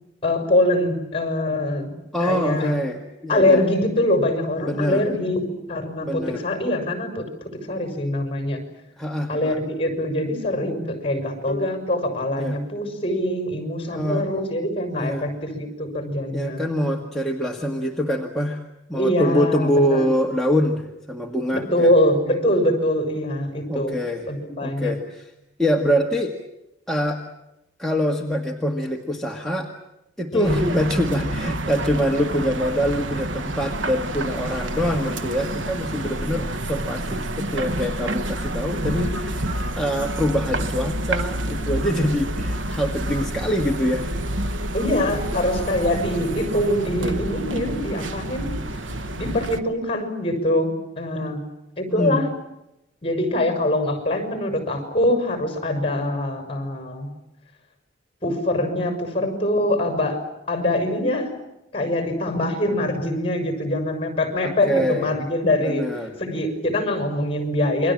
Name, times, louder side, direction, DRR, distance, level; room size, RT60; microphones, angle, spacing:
voice 1, 0.2-2.7 3.3-8.6 9.3-16.8 18.9-20.1 21.5-24.0 24.3-25.0 30.3-30.6 44.7-48.6 49.2-51.5 51.8-52.3 53.0-57.1 58.2-60.2 60.5-61.4 61.7-65.9 66.2-67.9, left 1 dB, 30° left, 7 dB, 6.2 m, -23 dB
voice 2, 2.1-3.7 4.6-5.0 6.0-6.4 9.0-9.6 12.4-12.6 13.9-14.4 14.9-15.3 16.3-18.6 18.9-21.9 23.7-24.3 24.6-25.3 25.6-26.3 26.9-27.2 27.8-29.7 30.2-44.1 51.9-52.2 64.4-65.1 65.4-66.1, equal, ahead, -1 dB, 1.8 m, -24 dB
sound 1, 11.5-14.7, left 5 dB, 50° left, 3.7 m, -41 dB
sound 2, 30.4-49.6, right 1 dB, 70° right, 1.3 m, -28 dB
28.5 x 24.0 x 7.6 m, 0.89 s
head